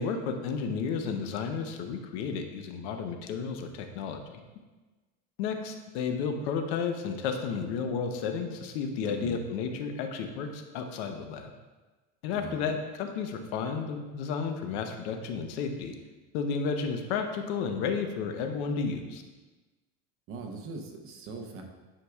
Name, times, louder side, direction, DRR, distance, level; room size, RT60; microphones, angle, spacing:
voice 1, 0.0-4.4 5.4-11.5 12.2-15.9 16.3-19.2, left 5 dB, 80° left, 6 dB, 0.8 m, -32 dB
voice 2, 9.0-9.4 12.3-12.6 20.3-21.6, right 3 dB, 40° right, 3 dB, 0.8 m, -40 dB
10.0 x 4.7 x 2.3 m, 1.2 s
cardioid pair, 150°, 33 cm